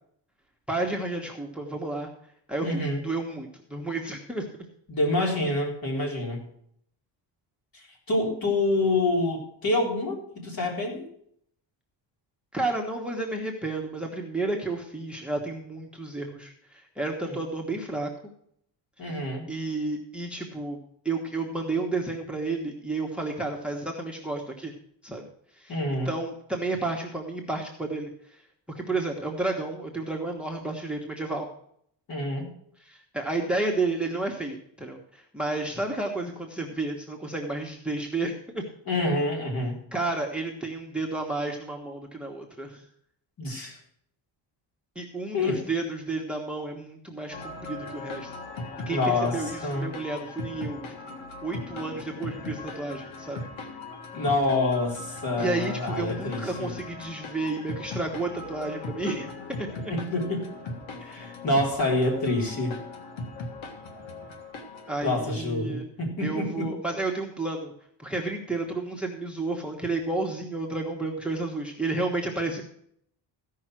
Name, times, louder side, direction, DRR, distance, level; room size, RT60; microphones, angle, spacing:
voice 1, 0.7-2.1 2.5-4.4 12.5-18.1 19.5-20.8 21.0-24.7 25.0-25.3 25.6-25.8 26.0-28.4 28.7-31.5 32.8-38.6 39.9-42.8 44.9-48.3 48.9-51.2 51.4-53.4 55.4-59.3 59.6-59.9 61.1-61.3 64.9-65.9 66.2-67.7 68.0-72.6, right 2 dB, ahead, 2 dB, 1.3 m, -31 dB
voice 2, 2.6-3.0 4.9-6.5 7.7-11.0 17.2-17.4 19.0-19.5 25.7-26.1 32.1-32.5 38.9-39.8 43.4-43.8 45.3-45.6 48.8-49.9 54.1-56.8 59.9-60.5 61.0-62.8 65.0-66.7, left 2 dB, 50° left, 0 dB, 3.8 m, -27 dB
sound 1, 47.3-64.9, left 3 dB, 85° left, 1.8 m, -39 dB
15.0 x 5.7 x 6.1 m, 0.67 s
cardioid pair, 135°, 45 cm